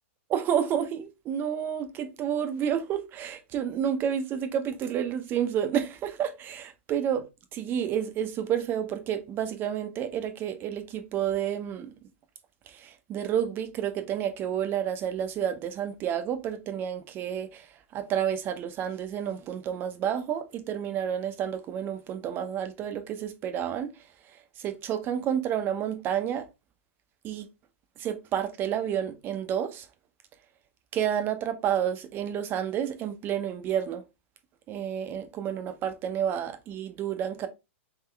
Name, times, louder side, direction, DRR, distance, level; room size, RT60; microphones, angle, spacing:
voice 1, 0.3-11.9 12.7-23.9 24.6-26.5 27.2-27.5 28.0-29.9 30.9-34.0 34.7-37.5, right 9 dB, 30° right, 0.7 m, -30 dB
3.7 x 3.5 x 3.3 m
hypercardioid pair, 140°, 7 cm